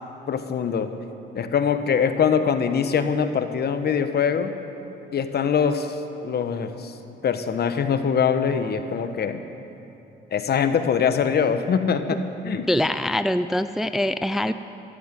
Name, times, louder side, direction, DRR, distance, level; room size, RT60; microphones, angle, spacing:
voice 1, 0.3-0.9 1.3-4.5 5.1-6.0 6.2-6.9 7.2-9.4 10.3-12.7, left 7 dB, 55° left, 9 dB, 1.1 m, -23 dB
voice 2, 12.7-14.5, left 1 dB, ahead, 11 dB, 0.4 m, -23 dB
15.0 x 11.5 x 7.5 m, 2.8 s
cardioid pair, 90°, 20 cm